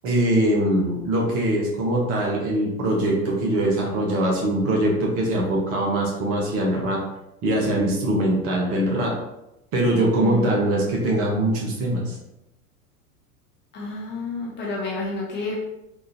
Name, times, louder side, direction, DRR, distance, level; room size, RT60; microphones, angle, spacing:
voice 1, 0.0-7.0 7.4-9.1 9.7-12.2, right 1 dB, 30° right, -1 dB, 0.7 m, -22 dB
voice 2, 10.2-10.6 13.7-15.6, left 2 dB, 25° left, -3 dB, 0.8 m, -30 dB
3.7 x 2.4 x 2.7 m, 0.88 s
figure-of-eight pair, 85°, 46 cm